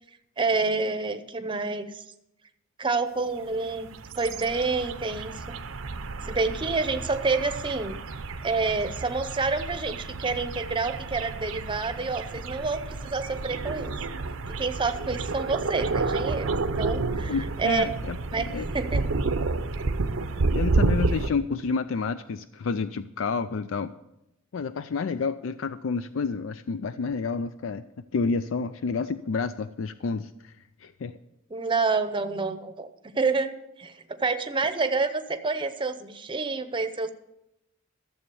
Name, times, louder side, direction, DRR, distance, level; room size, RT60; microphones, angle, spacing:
voice 1, 0.4-2.0 2.8-3.9 4.2-5.6 6.3-8.0 8.4-13.9 14.6-17.8 18.3-19.0 31.5-32.9 33.1-33.5 33.8-37.1, right 3 dB, 25° right, 9 dB, 0.7 m, -28 dB
sound 1, 3.6-21.3, right 3 dB, 80° right, 0.7 m, -30 dB
voice 2, 17.3-18.6 20.5-23.9 24.5-27.8 28.1-30.5 30.8-31.1, left 4 dB, 70° left, 12 dB, 0.4 m, -29 dB
13.0 x 7.2 x 6.9 m, 0.87 s
head